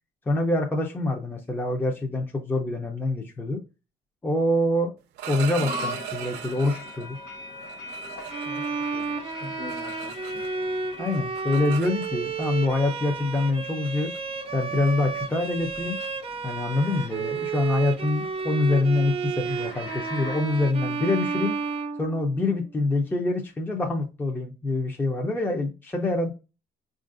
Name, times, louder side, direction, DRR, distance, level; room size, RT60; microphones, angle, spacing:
voice 1, 0.3-3.6 4.2-4.9 5.3-7.2 11.0-14.1 14.5-16.0 16.4-21.6 22.0-26.3, left 2 dB, 10° left, 0.6 m, -25 dB
sound 1, 5.0-7.1 7.6-10.7 10.9-12.5 13.4-13.5 13.8-14.2 14.6-14.9 15.2-15.5 15.7-16.0 16.3-21.7, right 11 dB, 85° right, 0.5 m, -40 dB
sound 2, 5.6-20.6, left 2 dB, 80° left, 0.9 m, -42 dB
Bowed string instrument, 8.3-22.6, right 5 dB, 35° right, 0.5 m, -32 dB
voice 2, 8.4-10.4, left 3 dB, 45° left, 1.0 m, -43 dB
4.5 x 2.5 x 2.4 m
cardioid pair, 110°, 17 cm